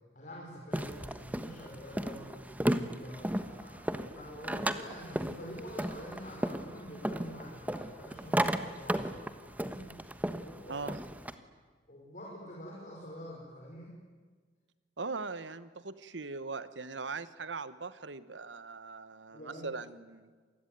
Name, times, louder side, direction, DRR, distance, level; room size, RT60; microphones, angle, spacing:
voice 1, 0.1-2.4 2.9-9.9 10.4-10.9 11.9-13.9 19.3-19.7, equal, 45° left, -3 dB, 5.4 m, -47 dB
sound 1, 0.7-11.3, right 1 dB, 10° right, 1.3 m, -35 dB
voice 2, 10.7-11.0 15.0-20.3, right 4 dB, 80° right, 14 dB, 1.2 m, -40 dB
27.0 x 20.0 x 9.5 m, 1.5 s
head